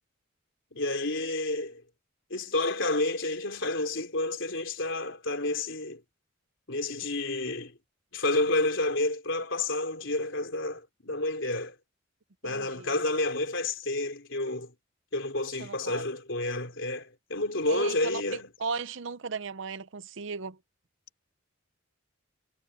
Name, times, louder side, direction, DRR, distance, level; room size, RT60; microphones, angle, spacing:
voice 1, 0.7-1.8 2.3-6.0 6.7-7.8 8.1-11.7 12.4-14.7 15.1-18.5, left 2 dB, 60° left, 4.2 m, -30 dB
voice 2, 12.4-12.9 15.6-16.0 17.7-18.2 18.6-20.6, right 4 dB, 60° right, 0.7 m, -36 dB
head